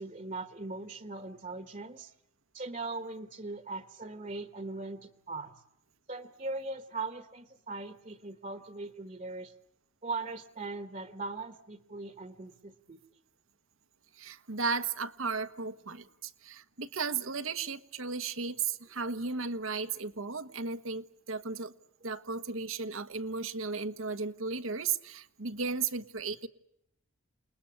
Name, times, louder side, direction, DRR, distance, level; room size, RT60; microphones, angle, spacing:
voice 1, 0.0-2.1 2.5-5.5 6.1-9.5 10.0-13.0 16.0-16.1, right 3 dB, 35° right, 1.2 m, -40 dB
voice 2, 14.1-21.7 22.0-26.5, right 4 dB, 80° right, 1.3 m, -35 dB
29.0 x 20.5 x 8.5 m
head